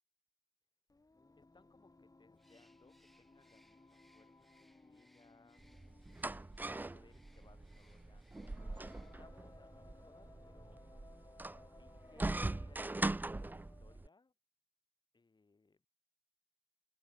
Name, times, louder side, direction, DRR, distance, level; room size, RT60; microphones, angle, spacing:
Singing, 0.9-14.1, left 2 dB, 55° left, 2.7 m, -63 dB
voice 1, 1.3-11.1 11.7-14.3 15.1-15.9, left 3 dB, 85° left, 3.9 m, -68 dB
Bird, 2.4-9.4, equal, ahead, 7.9 m, -72 dB
sound 1, 5.6-14.1, right 2 dB, 25° right, 0.3 m, -41 dB
wide cardioid pair, 60°, 7 cm